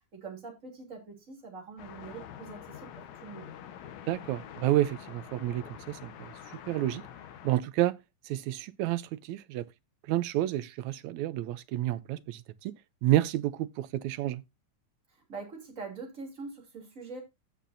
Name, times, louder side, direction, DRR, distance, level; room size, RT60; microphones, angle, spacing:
voice 1, 0.0-3.6 15.3-17.2, right 4 dB, 25° right, 3.2 m, -44 dB
sound 1, 1.8-7.6, left 9 dB, 75° left, 2.4 m, -46 dB
voice 2, 4.1-6.3 6.7-7.0 7.4-7.9 8.3-9.7 10.1-12.7 13.0-14.4, right 14 dB, 75° right, 1.8 m, -30 dB
16.5 x 5.9 x 2.6 m
omnidirectional pair, 3.5 m